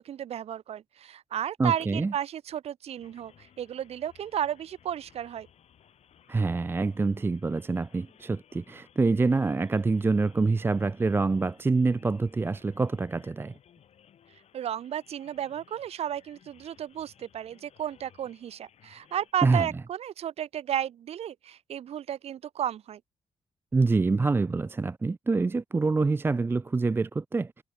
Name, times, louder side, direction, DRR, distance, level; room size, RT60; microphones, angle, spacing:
voice 1, 0.0-5.5 14.5-23.0, right 10 dB, 65° right, 0.6 m, -33 dB
voice 2, 1.6-2.1 6.3-13.5 19.4-19.7 23.7-27.6, right 3 dB, 20° right, 0.4 m, -26 dB
sound 1, 3.0-19.3, left 9 dB, 70° left, 5.4 m, -60 dB
cardioid pair, 110°, 11 cm